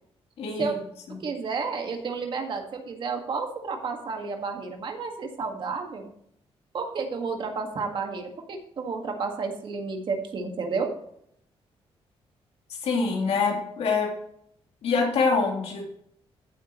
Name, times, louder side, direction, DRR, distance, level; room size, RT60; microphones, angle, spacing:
voice 1, 0.4-0.7 1.1-1.2 12.8-14.1 14.8-15.8, left 4 dB, 75° left, 0 dB, 3.4 m, -25 dB
voice 2, 1.2-6.1 6.7-10.9, right 4 dB, 50° right, 4 dB, 1.9 m, -31 dB
15.0 x 8.5 x 3.1 m, 0.70 s
wide cardioid pair, 155°, 11 cm